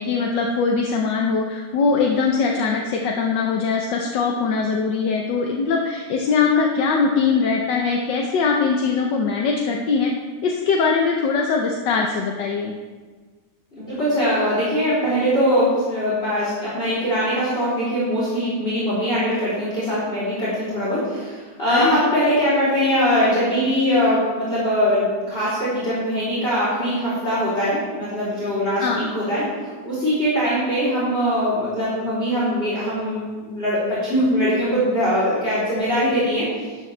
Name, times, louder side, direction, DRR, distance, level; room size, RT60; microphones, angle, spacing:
voice 1, 0.0-10.1 10.4-12.7 21.7-22.0 28.8-29.1, left 5 dB, 85° left, 0 dB, 1.6 m, -21 dB
voice 2, 13.8-29.4 29.8-36.4, equal, 30° left, -10 dB, 3.9 m, -21 dB
13.0 x 9.7 x 3.3 m, 1.4 s
omnidirectional pair, 1.9 m